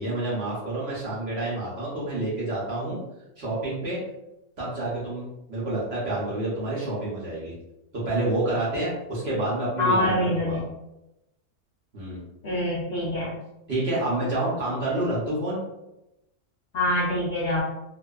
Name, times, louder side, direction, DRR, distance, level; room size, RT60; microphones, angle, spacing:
voice 1, 0.0-3.0 3.4-4.0 4.6-7.5 8.0-10.6 11.9-12.2 13.7-15.6, right 2 dB, 55° right, -7 dB, 0.8 m, -28 dB
voice 2, 9.8-10.6 12.4-13.3 16.7-17.6, left 1 dB, 60° left, -6 dB, 0.6 m, -25 dB
2.6 x 2.1 x 2.3 m, 0.91 s
omnidirectional pair, 1.6 m